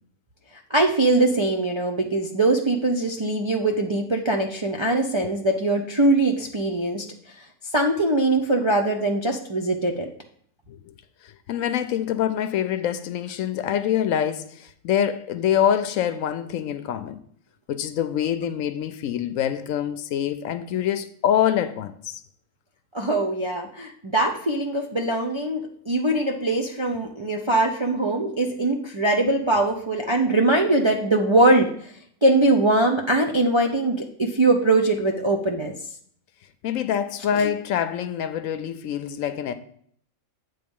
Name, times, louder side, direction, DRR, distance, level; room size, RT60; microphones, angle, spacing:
voice 1, 0.7-7.0 7.4-7.5 7.7-10.1 22.9-31.9 32.2-35.7 37.3-37.5, right 2 dB, 40° right, 0.4 m, -22 dB
voice 2, 11.5-17.2 17.7-22.2 36.6-39.5, left 9 dB, 75° left, 0.9 m, -25 dB
8.6 x 3.7 x 5.3 m
omnidirectional pair, 1.5 m